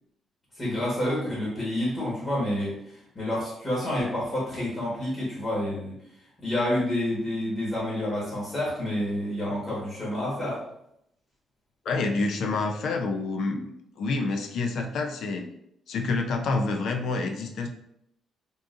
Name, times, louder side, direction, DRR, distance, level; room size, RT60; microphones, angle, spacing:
voice 1, 0.6-5.9 6.4-10.6, left 1 dB, 35° left, -6 dB, 1.4 m, -29 dB
voice 2, 11.9-13.7 14.0-15.5 15.9-17.7, left 3 dB, 70° left, 4 dB, 0.3 m, -28 dB
3.7 x 2.4 x 2.5 m, 0.77 s
cardioid pair, 90°, 0 cm